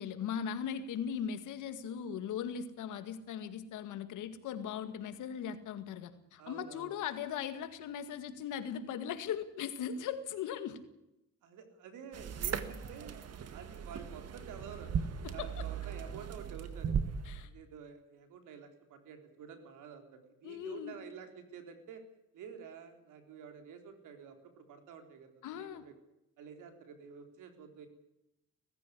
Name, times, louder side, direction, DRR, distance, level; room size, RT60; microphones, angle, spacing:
voice 1, 0.0-10.8 15.2-15.7 17.3-17.5 20.4-20.9 25.4-25.8, left 8 dB, 85° left, 10 dB, 2.1 m, -39 dB
voice 2, 6.4-6.9 11.4-13.2 13.5-14.9 15.3-17.0 17.4-22.0 22.3-25.9 26.4-27.9, right 7 dB, 85° right, 6 dB, 3.8 m, -50 dB
sound 1, 12.1-17.5, right 7 dB, 55° right, 1.8 m, -38 dB
17.5 x 16.0 x 9.9 m, 0.88 s
cardioid pair, 90°, 30 cm